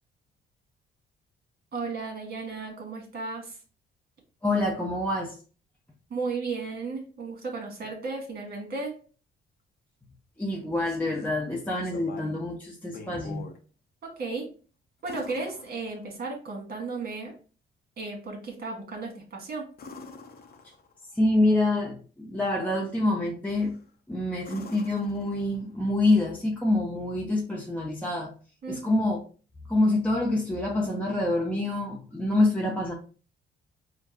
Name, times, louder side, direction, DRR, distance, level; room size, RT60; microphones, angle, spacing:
voice 1, 1.7-3.6 6.1-9.0 14.0-14.5 15.0-17.4 18.0-19.7 28.6-29.0, right 3 dB, 50° right, 1 dB, 1.7 m, -34 dB
voice 2, 4.4-5.4 10.4-13.4 21.1-23.8 24.1-28.3 28.7-29.2 29.7-32.9, left 2 dB, 5° left, -3 dB, 0.8 m, -26 dB
sound 1, 10.6-11.3 11.8-12.5 12.8-13.6 15.0-16.3 19.7-21.0 23.5-23.9 24.4-25.8 27.9-28.0, left 4 dB, 50° left, 0.8 m, -45 dB
4.4 x 2.3 x 2.9 m, 0.38 s
cardioid pair, 90°, 20 cm